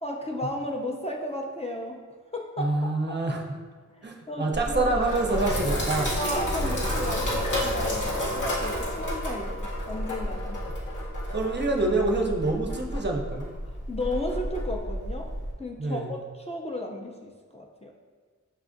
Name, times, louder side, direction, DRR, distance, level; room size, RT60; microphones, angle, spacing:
voice 1, 0.0-2.0 2.3-3.2 3.9-4.9 6.2-10.6 13.9-15.3 15.6-17.9, left 1 dB, 20° left, -1 dB, 0.4 m, -34 dB
voice 2, 2.6-3.5 4.0-6.1 11.3-13.5 15.8-16.2, right 2 dB, 35° right, 0 dB, 0.5 m, -26 dB
Sink (filling or washing), 4.5-15.5, equal, 75° left, 1.1 m, -30 dB
6.5 x 2.4 x 2.5 m, 1.5 s
wide cardioid pair, 65°, 31 cm